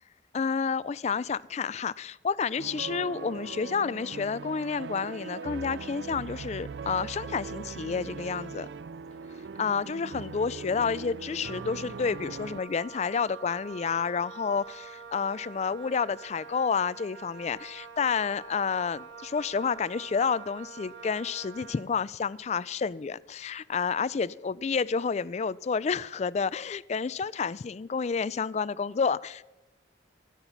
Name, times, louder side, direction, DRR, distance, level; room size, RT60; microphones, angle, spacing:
voice 1, 0.3-8.7 9.6-29.4, left 5 dB, 35° left, 0.3 m, -30 dB
sound 1, 2.6-12.6, right 5 dB, 65° right, 0.4 m, -40 dB
Wind instrument woodwind instrument, 11.4-22.0, right 6 dB, 85° right, 1.0 m, -46 dB
16.5 x 9.8 x 5.8 m
head